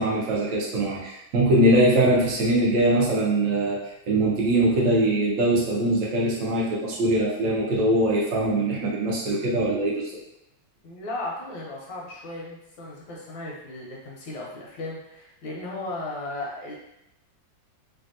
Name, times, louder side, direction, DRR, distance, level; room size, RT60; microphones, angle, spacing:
voice 1, 0.0-10.1, right 1 dB, 85° right, -4 dB, 0.7 m, -22 dB
voice 2, 10.8-16.8, left 2 dB, 85° left, -4 dB, 1.4 m, -36 dB
3.3 x 2.3 x 2.5 m, 0.85 s
omnidirectional pair, 2.1 m